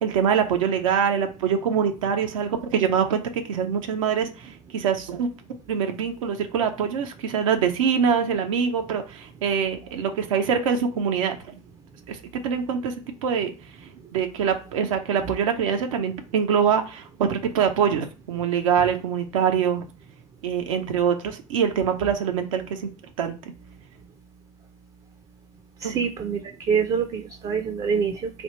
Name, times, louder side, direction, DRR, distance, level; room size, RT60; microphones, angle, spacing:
voice 1, 0.0-3.2 3.5-5.3 5.7-11.4 12.1-13.5 14.1-19.9 20.4-22.9 23.2-23.5 25.8-26.0, right 7 dB, 80° right, 5 dB, 0.6 m, -24 dB
voice 2, 25.8-26.4 26.7-28.3, right 6 dB, 35° right, 6 dB, 0.5 m, -25 dB
3.4 x 2.3 x 4.2 m, 0.33 s
hypercardioid pair, 70°, 17 cm